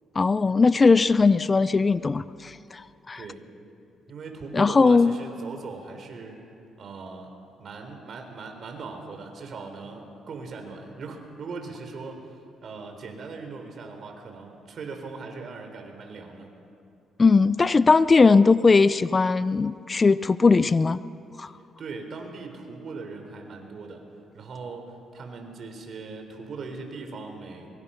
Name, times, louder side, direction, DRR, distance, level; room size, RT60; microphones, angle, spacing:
voice 1, 0.2-2.8 3.1-3.2 4.5-5.1 17.2-21.0 21.4-21.5, left 4 dB, 30° left, 16 dB, 0.5 m, -19 dB
voice 2, 4.1-6.4 6.8-7.3 7.6-12.3 12.6-16.5 21.8-24.1 24.3-27.7, right 4 dB, 55° right, 4 dB, 4.0 m, -39 dB
24.5 x 23.5 x 5.8 m, 2.6 s
cardioid pair, 90°, 0 cm